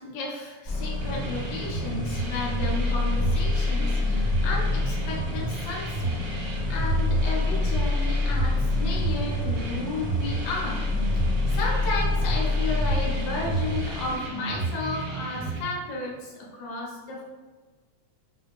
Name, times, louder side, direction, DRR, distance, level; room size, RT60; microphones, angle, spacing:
voice 1, 0.0-10.8 11.1-17.2, left 2 dB, 70° left, -4 dB, 1.4 m, -33 dB
sound 1, 0.6-14.2, left 3 dB, 35° left, 0.6 m, -27 dB
sound 2, 1.0-15.6, right 3 dB, 75° right, 2.0 m, -31 dB
4.5 x 2.7 x 2.3 m, 1.4 s
omnidirectional pair, 3.5 m